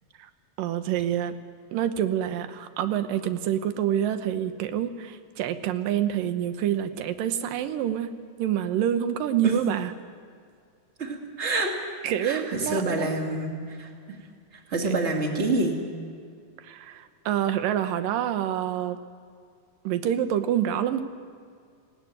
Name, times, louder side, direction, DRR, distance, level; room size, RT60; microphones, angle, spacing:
voice 1, 0.6-1.3 1.7-8.1 8.4-9.9 12.0-13.1 14.8-14.9 16.6-19.0 19.8-21.0, right 10 dB, 75° right, 10 dB, 2.7 m, -27 dB
voice 2, 11.0-11.7 12.2-13.9 14.7-15.8, right 2 dB, 20° right, 1 dB, 2.5 m, -27 dB
19.5 x 18.5 x 9.4 m, 2.3 s
omnidirectional pair, 4.0 m